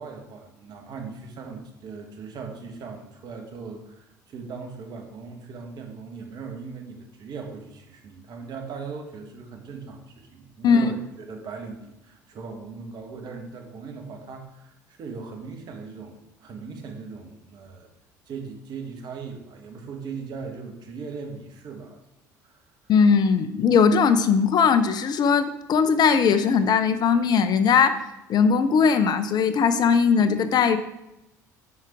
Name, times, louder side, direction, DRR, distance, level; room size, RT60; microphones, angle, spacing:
voice 1, 0.0-17.9 18.3-22.0 22.4-22.6, right 5 dB, 50° right, 3 dB, 1.8 m, -39 dB
voice 2, 22.9-28.0 28.3-30.8, left 6 dB, 45° left, 11 dB, 0.7 m, -19 dB
8.6 x 5.9 x 4.7 m, 0.89 s
hypercardioid pair, 65°, 9 cm